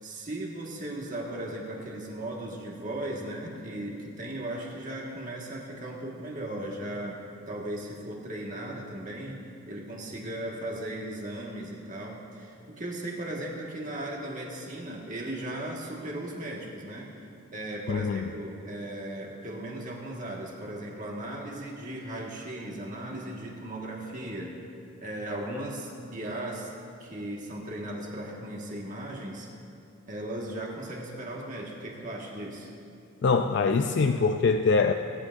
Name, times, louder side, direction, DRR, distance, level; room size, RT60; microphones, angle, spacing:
voice 1, 0.0-7.2 7.5-9.4 9.7-17.1 17.5-24.5 25.0-26.7 27.0-29.5 30.1-32.7, right 1 dB, 35° right, -2 dB, 1.7 m, -37 dB
voice 2, 17.9-18.2 33.2-34.9, left 4 dB, 50° left, 5 dB, 0.3 m, -23 dB
21.5 x 9.8 x 2.6 m, 2.6 s
head